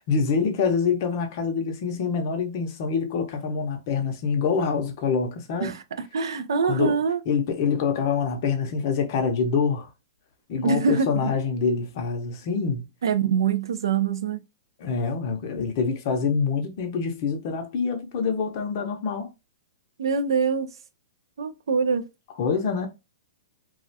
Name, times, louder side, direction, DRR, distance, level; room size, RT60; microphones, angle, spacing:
voice 1, 0.1-5.7 6.6-7.0 7.3-9.9 10.5-12.9 14.8-19.3 22.4-22.9, left 5 dB, 35° left, 0.5 m, -25 dB
voice 2, 5.6-7.2 10.6-11.3 13.0-14.4 20.0-20.7 21.4-22.1, right 5 dB, 90° right, 0.4 m, -24 dB
2.3 x 2.1 x 2.6 m
hypercardioid pair, 170°, 2 cm